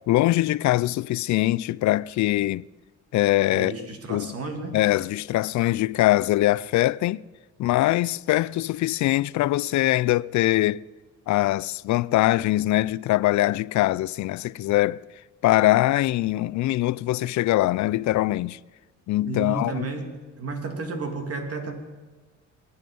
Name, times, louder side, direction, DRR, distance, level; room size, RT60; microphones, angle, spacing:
voice 1, 0.1-2.6 3.1-3.7 4.1-4.4 4.7-7.2 7.6-10.8 11.3-15.0 15.4-18.6 19.1-19.9, left 16 dB, 70° left, 0.5 m, -22 dB
voice 2, 3.5-4.8 19.2-20.1 20.4-21.7, right 3 dB, 50° right, 2.9 m, -32 dB
22.5 x 9.7 x 5.4 m
cardioid pair, 90°, 30 cm